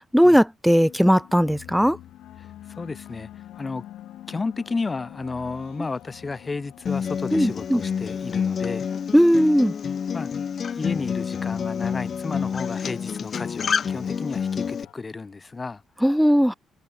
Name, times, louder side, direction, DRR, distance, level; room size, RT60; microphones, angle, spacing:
voice 1, 0.1-2.0 7.3-7.8 9.1-9.7 16.0-16.5, equal, ahead, 0.4 m, -18 dB
sound 1, 0.8-14.9, left 13 dB, 80° left, 5.3 m, -46 dB
voice 2, 2.4-3.9 4.3-8.9 10.1-10.3 10.7-15.8 16.3-16.4, left 4 dB, 25° left, 3.8 m, -33 dB
Acoustic guitar, 6.9-14.8, left 7 dB, 50° left, 1.4 m, -28 dB
cardioid pair, 90°, 0 cm